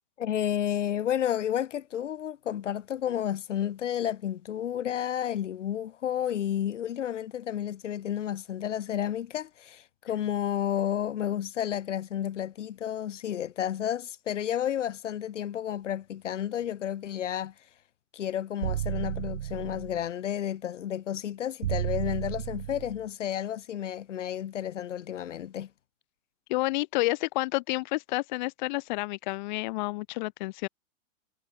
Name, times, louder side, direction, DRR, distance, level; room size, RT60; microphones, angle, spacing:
voice 1, 0.2-17.5 18.1-25.7, left 10 dB, 65° left, 3.0 m, -31 dB
sound 1, 18.6-20.1 21.6-23.1, right 12 dB, 75° right, 0.8 m, -32 dB
voice 2, 26.5-30.7, left 21 dB, 35° left, 3.3 m, -30 dB
hypercardioid pair, 160°, 38 cm